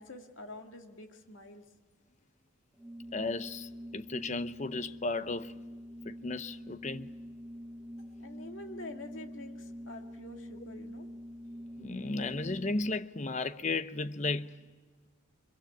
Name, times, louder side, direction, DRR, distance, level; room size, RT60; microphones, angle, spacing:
voice 1, 0.0-1.6 8.2-11.1, left 2 dB, 75° left, 2.1 m, -47 dB
Organ, 2.8-13.0, equal, 5° right, 0.8 m, -46 dB
voice 2, 3.1-5.5 6.0-7.1 11.8-14.6, left 3 dB, 35° left, 0.7 m, -34 dB
24.0 x 23.0 x 9.3 m
head